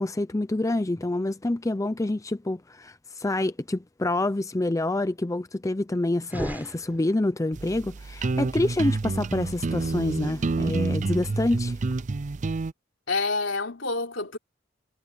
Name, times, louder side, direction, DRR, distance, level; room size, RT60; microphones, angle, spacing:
voice 1, 0.0-11.8, left 2 dB, 15° left, 0.5 m, -27 dB
sound 1, 6.2-7.5, equal, 10° right, 7.0 m, -35 dB
sound 2, 7.5-12.7, right 3 dB, 40° right, 0.5 m, -28 dB
voice 2, 13.1-14.4, left 3 dB, 75° left, 3.6 m, -28 dB
head